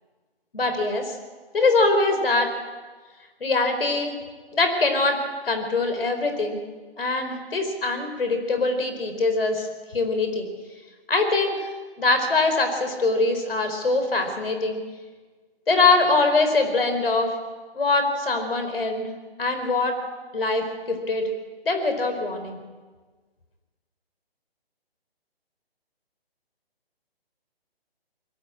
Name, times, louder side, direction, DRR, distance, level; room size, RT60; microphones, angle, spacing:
voice 1, 0.5-1.1 1.5-2.5 3.4-4.2 4.5-5.2 5.4-6.6 7.0-9.7 9.9-10.5 11.1-11.6 12.0-14.8 15.7-17.3 17.7-19.1 19.4-19.9 20.3-21.3 21.6-22.6, left 3 dB, 65° left, 6 dB, 4.7 m, -23 dB
22.0 x 15.5 x 8.8 m, 1.4 s
figure-of-eight pair, 145°, 31 cm